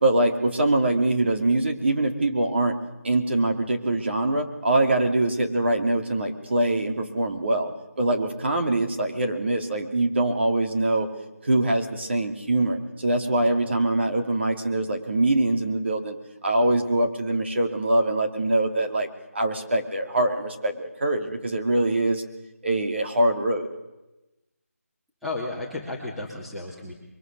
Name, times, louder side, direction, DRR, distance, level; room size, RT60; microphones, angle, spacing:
voice 1, 0.0-2.8 3.0-7.7 8.0-11.1 11.4-16.2 16.4-22.2 22.6-23.7, right 2 dB, 45° right, 4 dB, 3.0 m, -23 dB
voice 2, 25.2-26.9, left 2 dB, ahead, -6 dB, 2.4 m, -33 dB
23.5 x 23.0 x 6.9 m, 1.0 s
figure-of-eight pair, 170°, 8 cm